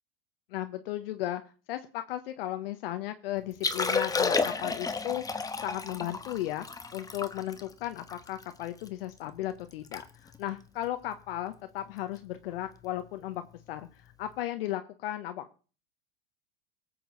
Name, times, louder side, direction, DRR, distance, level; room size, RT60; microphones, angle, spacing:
voice 1, 0.5-1.4 1.7-15.6, left 13 dB, 70° left, 8 dB, 1.0 m, -35 dB
Liquid, 3.5-8.9 9.3-9.4 9.7-10.0 10.3-10.5 11.1-11.4 12.8-12.9, left 4 dB, 10° left, 1.1 m, -32 dB
19.5 x 7.8 x 3.9 m, 0.37 s
hypercardioid pair, 100°, 30 cm